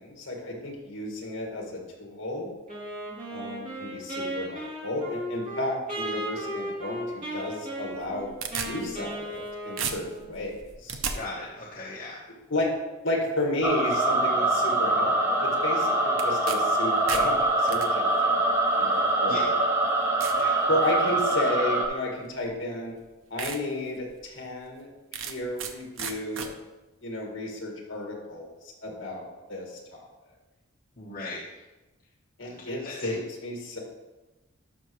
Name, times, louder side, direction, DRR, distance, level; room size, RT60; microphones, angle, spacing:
voice 1, 0.0-2.5 3.3-8.3 8.6-11.0 12.3-12.8 13.0-18.4 18.8-19.6 20.7-23.0 23.3-24.9 25.3-26.5 27.0-30.1 32.4-33.8, left 1 dB, 60° left, 0 dB, 2.0 m, -32 dB
Wind instrument woodwind instrument, 2.7-10.4, equal, 40° right, 3.1 m, -36 dB
sound 1, 7.9-9.5 9.8-11.2 16.2-16.6 16.9-17.9 18.8-18.9 19.5-19.6 20.2-20.4 20.9-21.3 22.4-22.5 23.0-23.1 23.4-23.6 24.0-24.1 25.1-25.7 26.0-26.5, right 7 dB, 65° right, 0.7 m, -34 dB
voice 2, 11.1-12.2 19.3-19.4 20.4-20.5 31.0-31.4 32.4-32.5 32.8-33.1, left 2 dB, 40° left, -5 dB, 1.1 m, -37 dB
sound 2, 13.6-21.9, right 2 dB, 10° right, 0.8 m, -24 dB
11.5 x 5.9 x 3.2 m, 1.1 s
head